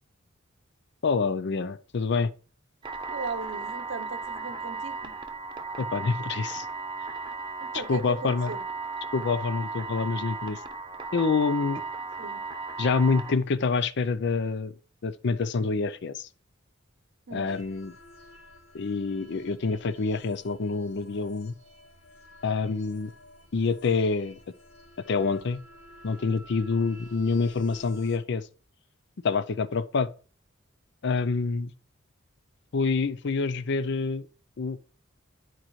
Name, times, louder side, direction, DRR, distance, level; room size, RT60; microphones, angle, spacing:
voice 1, 1.0-2.3 5.8-6.7 7.9-8.5 9.1-10.6 11.1-11.8 12.8-14.7 15.0-16.3 17.3-17.9 18.7-21.5 22.4-23.1 23.5-24.4 25.1-25.6 26.0-28.5 29.2-30.1 31.0-31.7 32.7-34.3 34.6-34.8, left 4 dB, 60° left, 0.5 m, -27 dB
sound 1, 2.8-13.3, right 4 dB, 25° right, 0.8 m, -36 dB
voice 2, 3.1-5.1 7.6-8.6 12.2-12.4 17.3-17.5, right 4 dB, 65° right, 0.7 m, -37 dB
sound 2, 17.5-28.2, left 1 dB, 80° left, 3.3 m, -51 dB
11.5 x 4.5 x 3.1 m
head